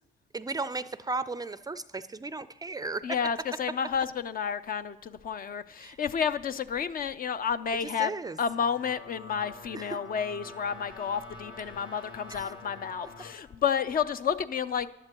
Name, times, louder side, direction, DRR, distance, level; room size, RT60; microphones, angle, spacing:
voice 1, 0.3-3.0 5.8-6.0 8.0-8.4 9.7-9.9 12.3-12.5, right 3 dB, 20° right, 14 dB, 0.4 m, -35 dB
voice 2, 3.0-8.1 8.4-14.9, left 7 dB, 45° left, 12 dB, 0.5 m, -31 dB
sound 1, 8.4-13.3, left 3 dB, 70° left, 1.2 m, -47 dB
Trumpet, 9.2-13.6, left 1 dB, 20° left, 1.0 m, -55 dB
14.5 x 11.0 x 2.9 m, 1.0 s
cardioid pair, 90°, 20 cm